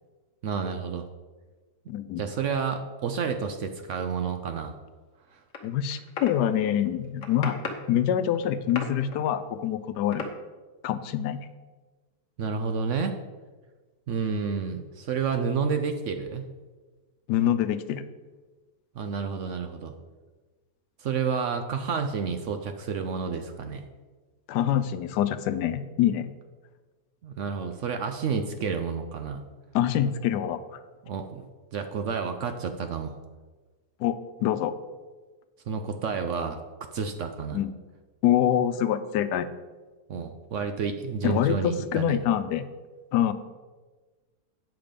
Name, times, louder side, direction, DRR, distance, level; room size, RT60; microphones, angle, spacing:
voice 1, 0.4-1.1 2.2-4.8 5.3-5.4 12.4-13.2 14.1-16.5 18.9-19.9 21.0-23.9 27.2-29.4 31.0-31.4 31.7-33.2 35.7-36.6 36.9-37.6 40.1-42.2, right 5 dB, 65° right, 7 dB, 0.8 m, -30 dB
voice 2, 1.9-2.2 5.6-7.6 7.9-10.2 10.8-11.4 17.3-18.0 24.5-26.3 29.7-30.6 34.0-34.7 37.5-37.7 38.2-39.5 41.2-42.7 43.1-43.3, left 10 dB, 90° left, 12 dB, 1.2 m, -25 dB
sound 1, 5.5-6.3 6.9-8.0 8.3-9.3 10.1-10.3, left 4 dB, 55° left, 1.4 m, -36 dB
9.1 x 5.9 x 5.1 m, 1.3 s
omnidirectional pair, 1.7 m